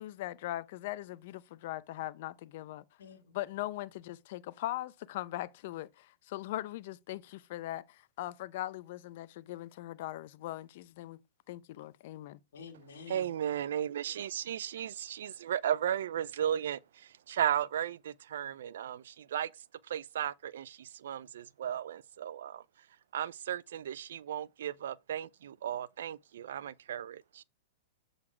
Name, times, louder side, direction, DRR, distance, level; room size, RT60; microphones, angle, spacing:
voice 1, 0.0-2.8 3.3-11.2 11.5-12.4, left 15 dB, 55° left, 0.5 m, -40 dB
voice 2, 3.0-3.4 12.5-13.3, left 5 dB, 75° left, 1.7 m, -49 dB
voice 3, 13.1-19.5 19.8-22.6 23.1-27.4, right 10 dB, 70° right, 0.4 m, -35 dB
7.5 x 4.0 x 4.4 m
hypercardioid pair, 120°, 0 cm